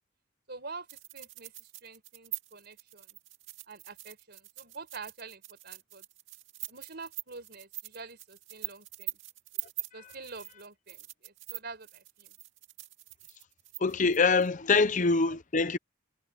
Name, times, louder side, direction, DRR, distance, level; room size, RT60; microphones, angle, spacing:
voice 1, 0.5-3.1 3.7-6.0 6.7-9.2 9.9-12.3 14.7-14.9 15.3-15.4, right 4 dB, 50° right, 5.0 m, -46 dB
sound 1, 0.9-14.5, right 17 dB, 70° right, 2.2 m, -43 dB
voice 2, 13.8-15.8, left 4 dB, 40° left, 0.7 m, -24 dB
head